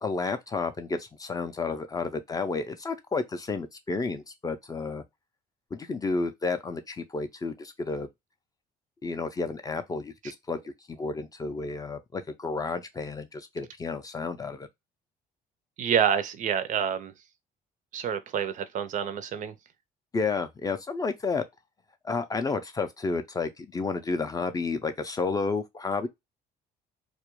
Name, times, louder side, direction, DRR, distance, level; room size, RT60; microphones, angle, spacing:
voice 1, 0.0-5.0 5.7-8.1 9.0-14.7 20.1-21.4 22.0-26.1, left 4 dB, 20° left, 0.3 m, -31 dB
voice 2, 15.8-17.1 17.9-19.5, right 8 dB, 50° right, 0.4 m, -27 dB
2.3 x 2.1 x 2.9 m
cardioid pair, 110°, 17 cm